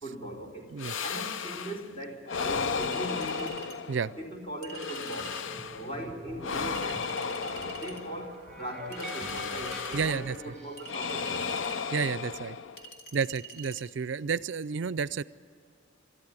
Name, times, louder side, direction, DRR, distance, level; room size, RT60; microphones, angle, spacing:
voice 1, 0.0-3.6 4.0-5.4 5.7-7.1 7.4-11.5, right 1 dB, 30° left, -1 dB, 4.1 m, -40 dB
sound 1, 0.8-1.9 2.3-4.3 4.7-5.9 6.4-8.4 9.0-10.4 10.8-13.0, left 5 dB, 70° left, 0.6 m, -34 dB
Chink clink, 2.8-3.8 4.6-5.5 6.7-8.0 8.9-10.1 10.8-11.8 12.8-13.8, right 4 dB, 55° left, 2.6 m, -46 dB
sound 2, 5.4-10.9, equal, 5° left, 6.8 m, -44 dB
voice 2, 9.9-10.4 11.9-12.6 13.1-15.2, right 6 dB, 65° right, 17 dB, 0.4 m, -30 dB
27.5 x 14.0 x 9.5 m, 2.6 s
head